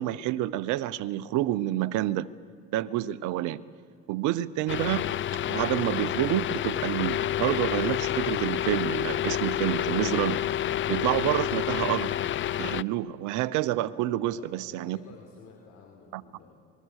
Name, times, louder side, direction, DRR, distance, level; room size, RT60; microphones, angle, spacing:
voice 1, 0.0-2.3 2.7-3.6 4.1-5.1 5.5-10.4 10.9-12.2 12.6-15.0 16.1-16.2, right 14 dB, 70° right, 0.9 m, -28 dB
sound 1, 4.7-12.8, left 11 dB, 40° left, 0.5 m, -29 dB
voice 2, 14.3-16.5, left 5 dB, 60° left, 4.1 m, -51 dB
26.5 x 21.0 x 6.5 m
supercardioid pair, 80°, 31 cm